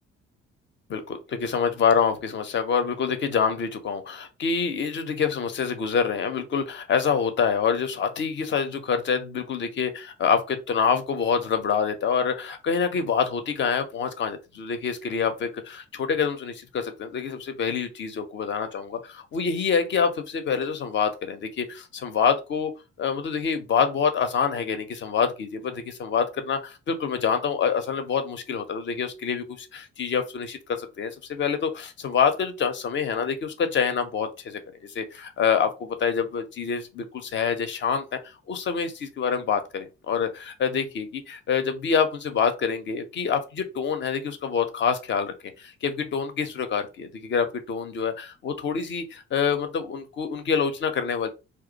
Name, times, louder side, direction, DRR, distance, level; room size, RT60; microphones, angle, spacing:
voice 1, 0.9-22.7 23.0-51.3, left 6 dB, 35° left, 0.5 m, -26 dB
2.3 x 2.1 x 2.6 m
figure-of-eight pair, 40°, 34 cm